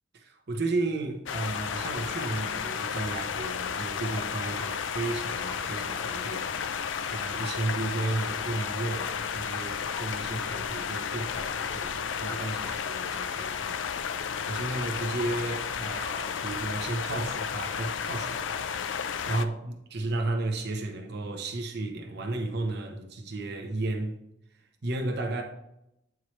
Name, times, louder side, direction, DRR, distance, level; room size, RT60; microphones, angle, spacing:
voice 1, 0.1-18.4 18.7-24.2 24.8-25.4, right 2 dB, 60° right, 0.8 m, -33 dB
sound 1, 1.3-19.5, left 7 dB, 75° left, 0.4 m, -33 dB
sound 2, 1.8-12.4 12.6-12.8, left 2 dB, 15° left, 0.6 m, -48 dB
8.5 x 4.7 x 3.2 m
head